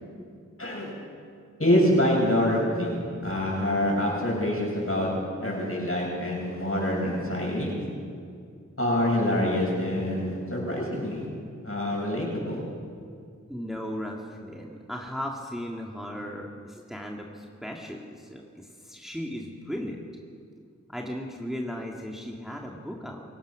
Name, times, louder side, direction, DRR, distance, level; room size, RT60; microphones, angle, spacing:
voice 1, 0.6-0.9 1.6-5.1 5.4-7.7 8.8-11.2 11.6-12.6, left 1 dB, 50° left, -3 dB, 7.3 m, -26 dB
voice 2, 13.5-20.0 20.9-23.2, equal, ahead, 0 dB, 2.0 m, -36 dB
26.5 x 16.5 x 6.3 m, 2.3 s
wide cardioid pair, 40°, 29 cm